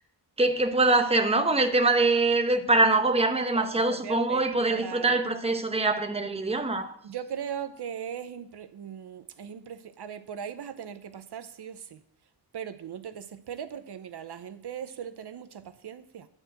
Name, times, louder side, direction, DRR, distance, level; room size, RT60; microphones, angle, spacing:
voice 1, 0.4-7.0, right 2 dB, 15° right, 0.9 m, -24 dB
voice 2, 3.5-5.2 7.0-12.0 12.5-16.3, right 8 dB, 70° right, 0.7 m, -39 dB
11.0 x 4.5 x 7.7 m
wide cardioid pair, 110°, 41 cm